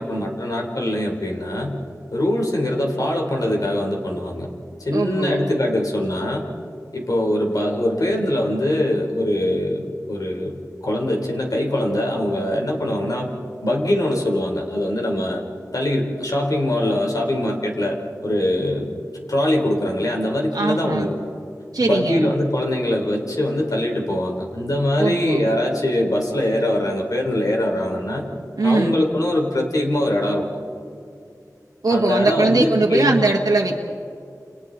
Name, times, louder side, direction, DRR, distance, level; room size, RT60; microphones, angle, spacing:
voice 1, 0.0-1.8 2.1-4.5 4.8-6.4 6.9-10.6 10.8-13.3 13.6-15.4 15.7-18.0 18.2-18.9 19.3-21.1 21.8-28.2 28.6-30.4 31.9-33.2, left 1 dB, 65° left, 0 dB, 3.8 m, -22 dB
voice 2, 4.9-5.4 20.5-21.1 21.7-22.3 25.0-25.5 28.6-29.0 31.8-33.8, right 3 dB, 80° right, -2 dB, 1.6 m, -20 dB
30.0 x 29.0 x 4.1 m, 2.4 s
wide cardioid pair, 60°, 7 cm